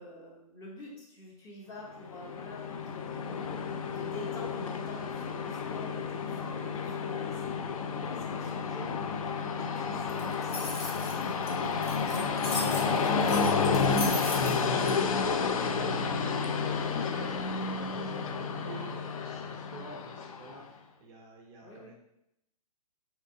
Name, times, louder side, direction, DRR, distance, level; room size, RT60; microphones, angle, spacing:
voice 1, 0.0-9.3 9.6-11.9 16.7-17.0 21.6-21.9, left 1 dB, 15° left, -1 dB, 0.7 m, -48 dB
Train, 2.0-20.6, left 5 dB, 60° left, 0.4 m, -31 dB
sound 1, 10.1-14.9, left 2 dB, 40° left, 0.8 m, -38 dB
voice 2, 12.6-16.2 16.6-21.9, right 3 dB, 20° right, -1 dB, 0.4 m, -48 dB
3.7 x 2.7 x 2.5 m, 0.80 s
hypercardioid pair, 140°, 20 cm